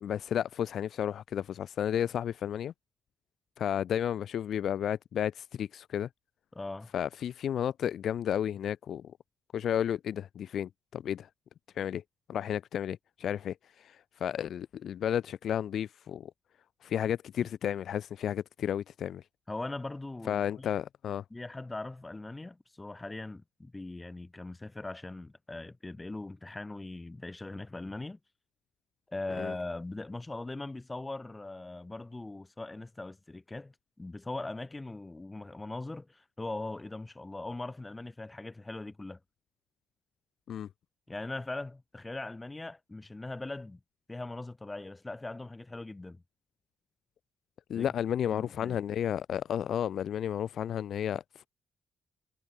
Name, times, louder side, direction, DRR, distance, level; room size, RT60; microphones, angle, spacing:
voice 1, 0.0-2.7 3.6-6.1 6.9-9.0 9.5-11.3 11.8-12.0 12.3-16.3 16.8-19.2 20.3-21.2 29.4-29.5 40.5-40.7 47.7-51.5, left 9 dB, 60° left, 0.4 m, -32 dB
voice 2, 6.5-6.9 17.4-17.5 19.5-20.7 21.3-28.2 29.1-39.2 41.1-43.8 44.1-46.2 47.7-47.9 48.3-48.8, left 2 dB, 15° left, 2.4 m, -40 dB
cardioid pair, 160°, 0 cm